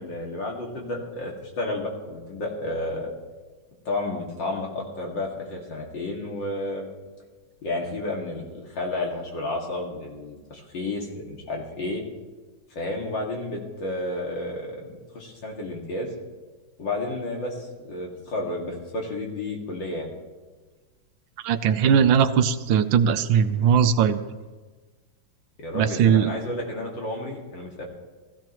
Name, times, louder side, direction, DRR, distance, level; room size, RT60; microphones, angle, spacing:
voice 1, 0.0-3.1 3.8-6.9 7.6-12.0 12.7-16.1 16.8-20.1 25.6-27.8, left 2 dB, 65° left, -1 dB, 2.8 m, -31 dB
voice 2, 21.4-24.2 25.7-26.3, right 7 dB, 75° right, 10 dB, 1.4 m, -19 dB
19.5 x 14.5 x 3.0 m, 1.3 s
omnidirectional pair, 2.2 m